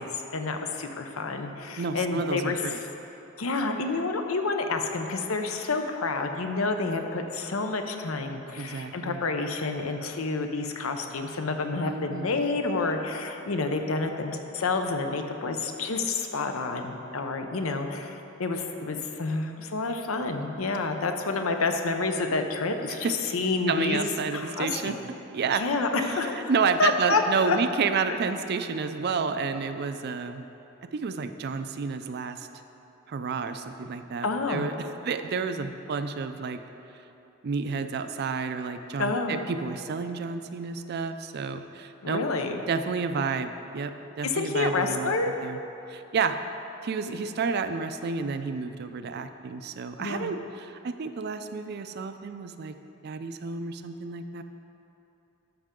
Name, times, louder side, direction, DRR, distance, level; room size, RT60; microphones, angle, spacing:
voice 1, 0.0-2.6 3.4-25.0 25.5-26.5 26.8-27.6 28.1-28.2 34.2-34.7 39.0-39.4 42.0-42.6 44.2-45.3 47.1-47.2 50.0-50.3, left 3 dB, 90° left, 5 dB, 0.7 m, -29 dB
voice 2, 1.8-2.8 8.6-9.2 11.9-12.3 23.0-23.1 23.7-24.9 25.3-25.6 26.0-26.2 26.5-30.5 30.9-32.5 33.1-36.6 37.4-42.2 42.7-45.1 45.4-45.6 45.9-46.4 46.8-52.7 53.0-54.4, right 5 dB, 50° right, 9 dB, 0.4 m, -30 dB
12.5 x 5.6 x 3.7 m, 2.9 s
head